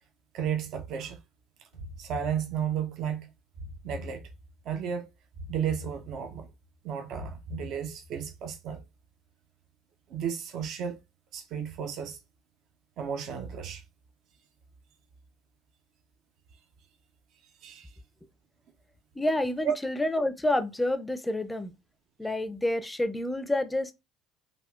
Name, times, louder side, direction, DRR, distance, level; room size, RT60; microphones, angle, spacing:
voice 1, 0.3-1.2 2.0-3.3 3.8-4.3 4.6-5.1 5.5-6.5 6.8-8.8 10.1-11.0 11.3-12.2 13.0-13.8 17.6-18.0 19.6-19.7, right 8 dB, 55° right, 0.4 m, -33 dB
sound 1, 1.7-2.9 3.5-4.7 5.3-6.5 7.1-8.3, left 2 dB, 80° right, 1.4 m, -43 dB
voice 2, 19.2-21.7 22.2-23.9, left 1 dB, 10° left, 0.4 m, -28 dB
3.4 x 2.3 x 2.4 m
figure-of-eight pair, 60°, 0 cm